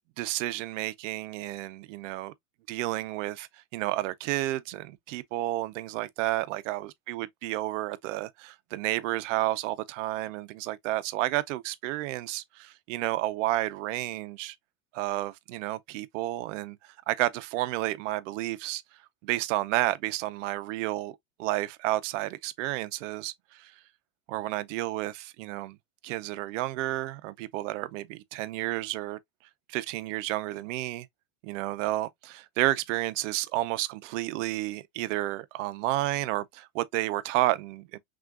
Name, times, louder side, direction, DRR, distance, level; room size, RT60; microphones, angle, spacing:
voice 1, 0.2-2.3 2.7-14.5 14.9-16.8 17.1-18.8 19.2-23.3 24.3-25.8 26.0-29.2 29.7-31.1 31.4-38.0, right 16 dB, 70° right, 0.7 m, -31 dB
6.1 x 2.5 x 2.5 m
supercardioid pair, 145°, 39 cm